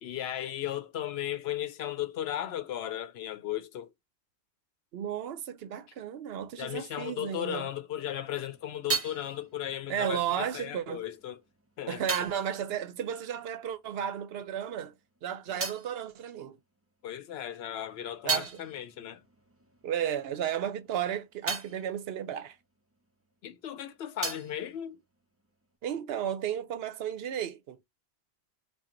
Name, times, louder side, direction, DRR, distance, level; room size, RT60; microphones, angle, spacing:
voice 1, 0.0-3.9 6.6-11.4 11.8-12.0 15.5-15.6 17.0-19.2 23.4-25.0, left 11 dB, 75° left, 0.8 m, -36 dB
voice 2, 4.9-7.7 9.9-11.0 11.9-14.9 15.2-16.6 18.2-18.6 19.8-22.6 25.8-27.8, right 9 dB, 70° right, 0.8 m, -33 dB
sound 1, 8.2-14.1 14.3-17.0 17.4-23.5 23.7-25.8, right 4 dB, 20° right, 0.5 m, -39 dB
3.7 x 2.3 x 4.3 m
omnidirectional pair, 1.1 m